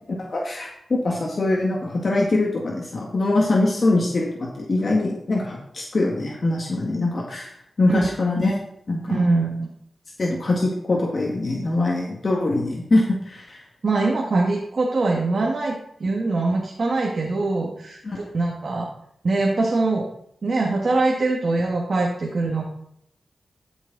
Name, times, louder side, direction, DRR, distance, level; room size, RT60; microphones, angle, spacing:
voice 1, 0.0-9.2 10.2-13.6 18.0-18.2, left 2 dB, 55° left, -2 dB, 1.9 m, -23 dB
voice 2, 9.1-9.7 13.8-18.9 19.2-20.1 20.4-22.6, right 3 dB, 60° right, -1 dB, 1.8 m, -23 dB
13.0 x 6.2 x 4.1 m, 0.73 s
cardioid pair, 60°, 0 cm